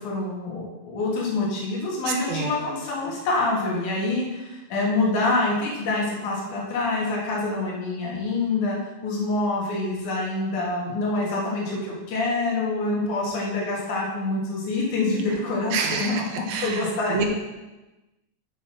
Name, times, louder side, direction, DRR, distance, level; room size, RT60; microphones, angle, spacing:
voice 1, 0.0-8.8 9.0-17.3, left 2 dB, 80° left, -4 dB, 3.2 m, -26 dB
voice 2, 2.1-2.5 15.7-17.3, right 5 dB, 75° right, 4 dB, 2.1 m, -28 dB
8.0 x 7.2 x 4.4 m, 1.1 s
omnidirectional pair, 3.5 m